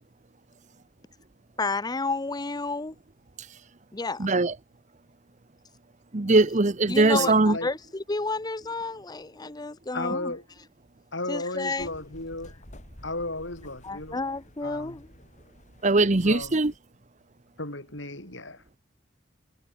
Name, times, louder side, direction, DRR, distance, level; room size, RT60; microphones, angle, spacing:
voice 1, 1.6-2.9 3.9-4.3 6.9-10.3 11.3-11.9 13.8-15.1, left 3 dB, 20° left, 0.7 m, -31 dB
voice 2, 4.2-4.5 6.1-7.6 15.8-16.7, right 3 dB, 40° right, 1.0 m, -21 dB
voice 3, 7.1-7.7 9.9-10.4 11.1-12.5 13.0-14.2 14.6-15.0 16.2-16.6 17.6-18.6, left 2 dB, 75° left, 7.9 m, -34 dB
sound 1, 11.8-16.8, equal, 40° left, 5.1 m, -50 dB
head